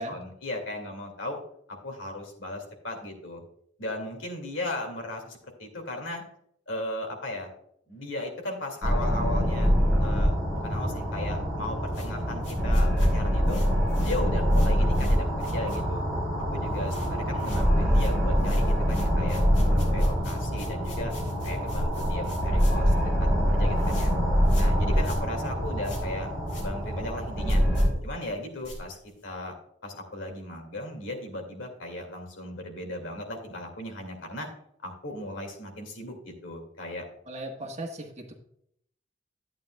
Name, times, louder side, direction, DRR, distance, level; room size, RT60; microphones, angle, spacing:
voice 1, 0.0-1.4 1.7-3.4 3.8-6.2 6.7-7.5 7.9-9.7 10.0-13.6 14.0-16.0 16.5-21.1 21.4-24.1 24.5-27.6 28.0-29.6 29.8-34.5 34.8-37.1, left 1 dB, 85° left, 3 dB, 2.3 m, -37 dB
sound 1, 8.8-27.9, equal, ahead, 3.4 m, -25 dB
sound 2, 11.9-16.2 16.5-17.1 17.4-29.3, equal, 60° left, 3.3 m, -40 dB
voice 2, 37.3-38.3, right 1 dB, 35° right, 2 dB, 1.4 m, -37 dB
11.5 x 8.8 x 2.3 m, 0.68 s
head